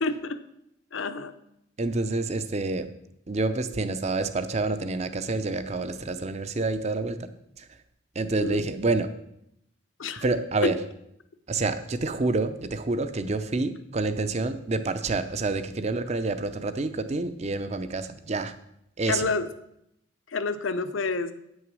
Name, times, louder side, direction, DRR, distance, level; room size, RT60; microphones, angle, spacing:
voice 1, 0.0-0.4 0.9-1.3 8.4-8.6 10.0-10.2 10.6-10.7 19.1-19.5 20.3-21.3, left 3 dB, 80° left, 10 dB, 0.7 m, -28 dB
voice 2, 1.8-2.9 3.3-7.3 7.6-7.7 8.1-9.1 10.2-10.8 11.5-18.5 19.0-19.2, right 3 dB, 35° right, 11 dB, 0.6 m, -28 dB
8.9 x 6.4 x 6.2 m, 0.78 s
head